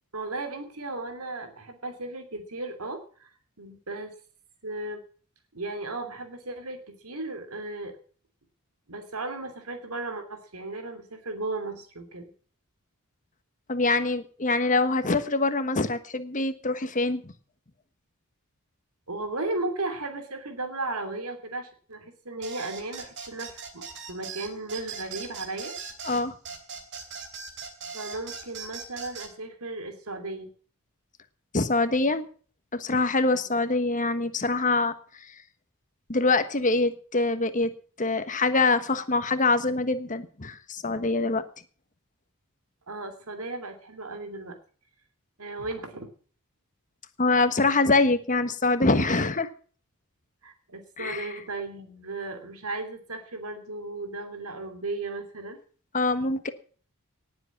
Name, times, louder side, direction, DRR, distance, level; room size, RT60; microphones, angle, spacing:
voice 1, 0.1-4.1 4.6-5.0 5.5-8.0 8.9-12.3 19.1-25.7 27.9-30.5 33.4-33.5 42.9-44.6 45.4-46.1 50.4-55.6, right 2 dB, 80° right, 6 dB, 2.9 m, -35 dB
voice 2, 13.7-17.2 26.0-26.3 31.5-32.3 32.7-34.9 36.1-37.7 38.0-41.4 47.2-49.5 51.0-51.3 55.9-56.5, left 3 dB, 35° left, 11 dB, 1.3 m, -24 dB
sound 1, 22.4-29.3, right 5 dB, 55° right, 3.1 m, -39 dB
19.0 x 7.8 x 7.2 m, 0.43 s
head